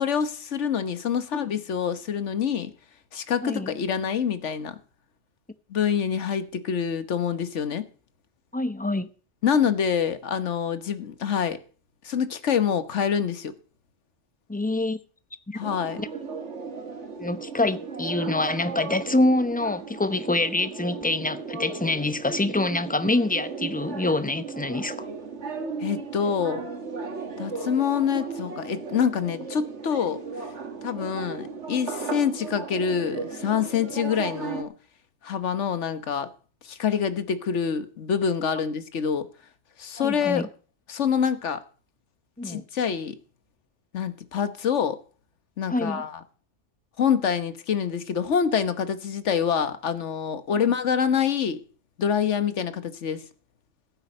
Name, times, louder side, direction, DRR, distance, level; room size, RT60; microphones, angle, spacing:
voice 1, 0.0-2.7 3.1-4.8 5.7-7.8 9.4-11.6 12.0-13.5 15.6-16.0 25.8-26.6 27.4-30.2 30.8-34.7 35.2-36.3 36.6-39.3 39.8-40.5 40.9-41.6 42.4-43.2 43.9-45.0 45.6-46.2 47.0-51.6 52.0-53.2, left 7 dB, 85° left, 1.4 m, -26 dB
voice 2, 8.5-9.1 14.5-15.0 15.5-15.6 16.0-16.1 17.1-25.1 40.0-40.5 42.4-42.6 45.7-46.0, left 2 dB, 10° left, 0.6 m, -26 dB
sound 1, 15.6-34.6, right 5 dB, 75° right, 1.9 m, -36 dB
15.5 x 8.8 x 5.3 m
omnidirectional pair, 1.2 m